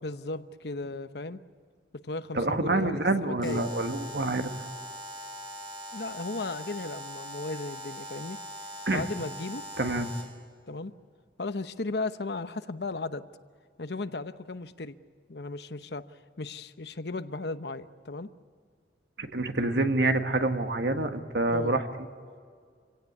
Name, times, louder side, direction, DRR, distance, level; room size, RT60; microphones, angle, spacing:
voice 1, 0.0-1.4 2.0-3.7 5.9-8.4 8.9-9.6 10.7-10.9 11.4-13.2 13.8-14.9 15.3-16.0 16.4-18.3 21.5-21.8, left 3 dB, 65° left, 11 dB, 0.9 m, -35 dB
voice 2, 2.3-4.5 8.9-9.1 9.8-10.1 19.2-21.8, right 2 dB, 65° right, 6 dB, 1.7 m, -27 dB
Alarm, 3.4-10.4, equal, 25° right, 2.4 m, -41 dB
27.0 x 17.0 x 9.6 m, 2.1 s
head